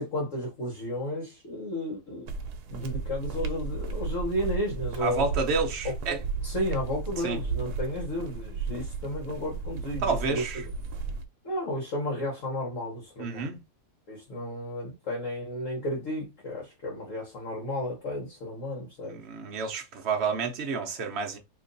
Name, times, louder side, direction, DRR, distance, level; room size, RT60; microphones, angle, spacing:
voice 1, 0.0-2.3 2.7-5.2 6.1-6.2 6.4-10.4 11.4-13.5 14.1-19.2, left 1 dB, 55° left, 1.4 m, -33 dB
sound 1, 2.3-11.3, right 4 dB, 75° right, 1.1 m, -34 dB
voice 2, 5.0-6.2 7.2-7.4 10.0-10.6 13.2-13.6 19.1-21.4, right 4 dB, 55° right, 0.8 m, -29 dB
3.0 x 2.6 x 3.9 m
omnidirectional pair, 1.7 m